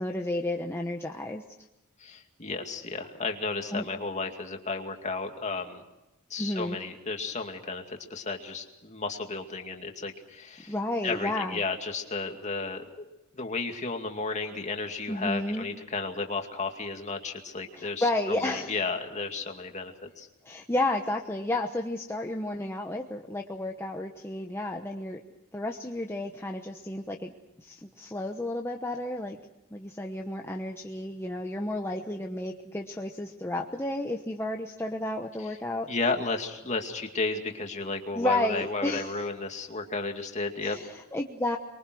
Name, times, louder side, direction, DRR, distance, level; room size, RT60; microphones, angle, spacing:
voice 1, 0.0-1.4 3.7-3.9 6.4-6.8 10.7-11.6 15.1-15.7 17.7-18.8 20.4-25.2 25.5-27.3 27.6-29.4 29.7-35.9 38.1-39.3 40.6-41.6, left 1 dB, 10° left, 2 dB, 1.0 m, -32 dB
voice 2, 2.0-5.8 6.3-10.7 11.0-12.8 13.3-20.3 35.9-40.8, left 3 dB, 35° left, 4 dB, 2.4 m, -33 dB
24.5 x 23.0 x 6.2 m, 0.95 s
head